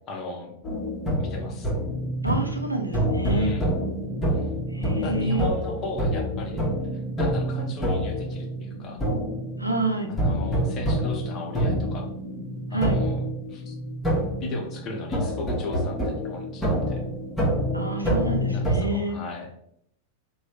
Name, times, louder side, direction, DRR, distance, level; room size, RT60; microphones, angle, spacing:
voice 1, 0.1-0.5 1.2-1.7 3.3-3.7 5.0-6.6 7.2-9.0 10.1-12.0 12.7-13.2 13.5-13.7 14.4-17.0 18.5-19.5, left 3 dB, 35° left, 1 dB, 0.7 m, -35 dB
sound 1, 0.6-18.8, equal, 10° left, 1.1 m, -27 dB
voice 2, 2.2-3.6 4.7-5.5 9.6-10.1 12.7-13.0 17.7-19.2, right 2 dB, 90° right, 3 dB, 0.5 m, -28 dB
3.1 x 2.2 x 3.0 m, 0.71 s
figure-of-eight pair, 90°, 0 cm